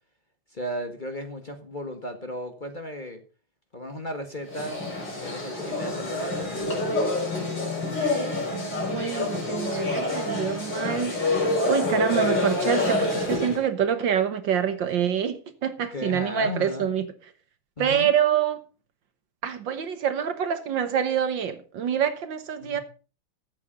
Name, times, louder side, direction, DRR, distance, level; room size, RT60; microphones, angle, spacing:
voice 1, 0.5-3.2 3.7-4.8 5.2-6.8 15.9-16.9 17.8-18.1 22.6-22.8, equal, 25° left, 1.5 m, -35 dB
sound 1, 4.5-13.6, left 2 dB, 60° left, 5.8 m, -27 dB
voice 2, 8.5-17.1 17.8-18.6 19.4-22.8, right 8 dB, 65° right, 1.8 m, -26 dB
14.0 x 8.4 x 5.3 m
omnidirectional pair, 2.3 m